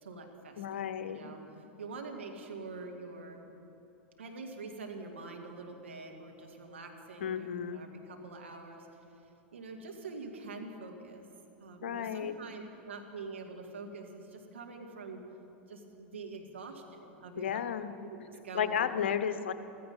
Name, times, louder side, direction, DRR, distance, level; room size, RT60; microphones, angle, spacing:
voice 1, 0.0-1.4 1.8-3.4 4.2-8.9 9.5-11.3 11.6-15.2 15.7-17.6 18.0-18.2 18.4-18.9, right 3 dB, 80° right, 2 dB, 2.0 m, -45 dB
voice 2, 0.6-1.3 7.2-7.8 11.8-12.4 17.4-17.9 18.5-19.5, left 8 dB, 70° left, 12 dB, 0.8 m, -33 dB
15.5 x 14.0 x 5.5 m, 2.9 s
figure-of-eight pair, 90°, 6 cm